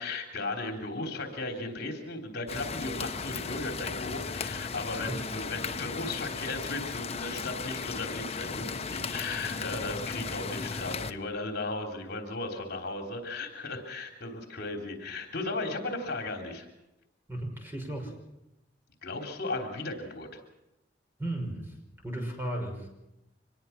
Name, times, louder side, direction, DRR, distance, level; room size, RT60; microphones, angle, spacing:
voice 1, 0.0-16.7 19.0-20.4, left 2 dB, 60° left, 3 dB, 3.5 m, -36 dB
sound 1, 2.5-11.1, left 5 dB, 35° left, 0.9 m, -36 dB
voice 2, 4.9-5.2 17.3-18.2 21.2-21.7 22.0-22.9, right 1 dB, 10° right, 2 dB, 5.9 m, -35 dB
25.5 x 21.0 x 5.9 m, 0.92 s
head